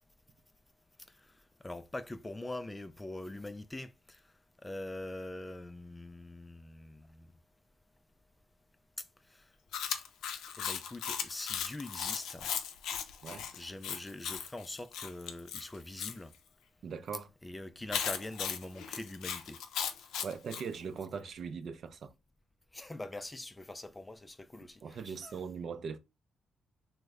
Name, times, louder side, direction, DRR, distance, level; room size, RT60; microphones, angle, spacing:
voice 1, 1.6-4.2 4.6-7.3 9.3-9.5 10.6-12.5 13.5-16.3 17.4-19.6 22.7-25.4, left 2 dB, 15° left, 0.3 m, -43 dB
Chewing mastication, 9.7-16.2 17.9-20.7, left 8 dB, 85° left, 0.5 m, -37 dB
voice 2, 16.8-17.3 20.2-22.1 24.8-26.0, right 6 dB, 60° right, 0.4 m, -40 dB
3.1 x 2.1 x 3.5 m
cardioid pair, 95°, 0 cm